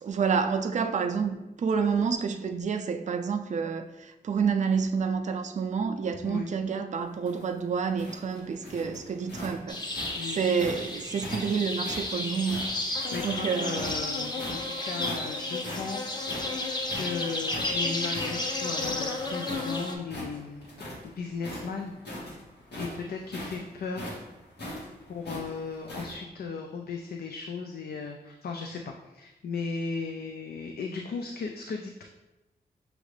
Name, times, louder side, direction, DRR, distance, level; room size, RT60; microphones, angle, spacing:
voice 1, 0.0-9.8 10.3-12.7 13.0-13.9 22.9-23.0, right 6 dB, 45° right, 0.4 m, -29 dB
sound 1, 7.1-10.8 11.2-13.4 13.7-14.7 15.0-15.4 15.6-19.7 20.0-21.1 21.4-26.1, left 1 dB, 85° left, 1.5 m, -40 dB
sound 2, 9.7-20.0, left 2 dB, 25° left, 0.6 m, -32 dB
voice 2, 12.8-16.6 16.9-20.7 21.0-22.2 22.7-24.2 25.1-32.0, left 4 dB, 70° left, 0.4 m, -36 dB
6.2 x 2.4 x 3.2 m
wide cardioid pair, 105°, 17 cm